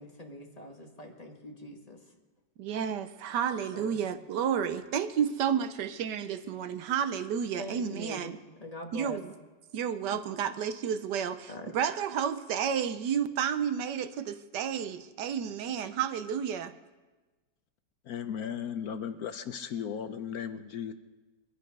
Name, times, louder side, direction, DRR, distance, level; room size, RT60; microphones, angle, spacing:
voice 1, 0.0-2.0 3.7-4.0 7.6-8.3 8.6-9.2 11.5-11.7, equal, 20° left, 1 dB, 1.8 m, -43 dB
voice 2, 2.6-8.4 8.9-9.3 9.7-16.7, right 8 dB, 80° right, 12 dB, 1.3 m, -31 dB
voice 3, 18.1-20.9, left 8 dB, 65° left, 10 dB, 1.1 m, -36 dB
22.0 x 11.5 x 5.3 m, 1.2 s
omnidirectional pair, 1.8 m